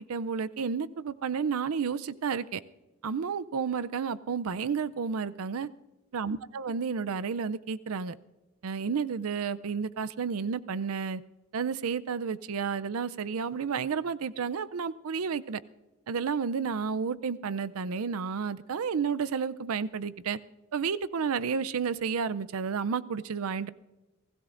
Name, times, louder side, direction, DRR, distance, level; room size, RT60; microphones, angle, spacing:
voice 1, 0.1-2.6 3.0-5.7 6.1-8.2 8.6-11.2 11.5-15.6 16.1-20.4 20.7-23.7, right 6 dB, 85° right, 15 dB, 0.5 m, -31 dB
28.5 x 16.5 x 2.5 m, 1.1 s
head